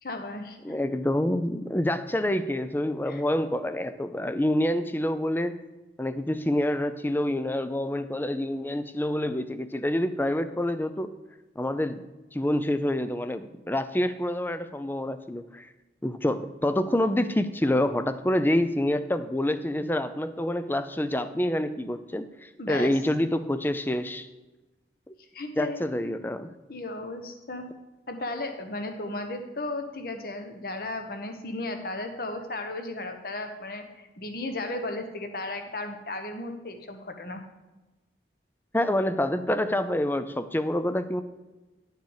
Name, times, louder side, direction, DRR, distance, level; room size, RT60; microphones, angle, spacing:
voice 1, 0.0-0.8 3.1-3.2 22.6-22.9 25.3-25.8 26.7-27.7 28.1-37.4, left 2 dB, 50° left, 6 dB, 1.1 m, -35 dB
voice 2, 0.6-5.6 6.0-11.1 11.6-12.1 12.3-15.7 16.0-24.3 25.1-25.2 25.6-26.5 38.7-41.2, left 1 dB, 10° left, 11 dB, 0.4 m, -27 dB
11.0 x 6.7 x 4.8 m, 1.1 s
head